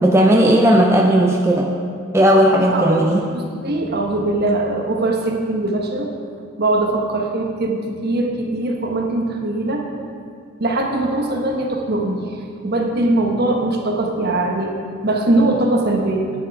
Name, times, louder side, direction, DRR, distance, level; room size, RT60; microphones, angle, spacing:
voice 1, 0.0-1.7 2.1-3.2, right 1 dB, 15° right, 0 dB, 0.5 m, -14 dB
voice 2, 2.7-3.0 3.3-6.1 6.6-9.8 10.6-14.7 15.0-16.3, right 2 dB, 50° right, 1 dB, 1.2 m, -21 dB
9.9 x 9.3 x 4.7 m, 2.3 s
head